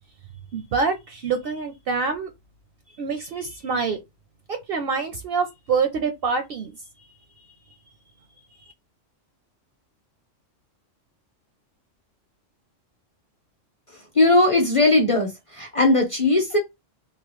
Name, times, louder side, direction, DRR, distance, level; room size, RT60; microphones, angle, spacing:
voice 1, 0.5-2.3 3.0-4.0 4.7-6.8, right 5 dB, 60° right, 0.6 m, -26 dB
voice 2, 14.1-16.6, left 2 dB, 35° left, 0.6 m, -19 dB
3.0 x 2.2 x 3.0 m
omnidirectional pair, 1.3 m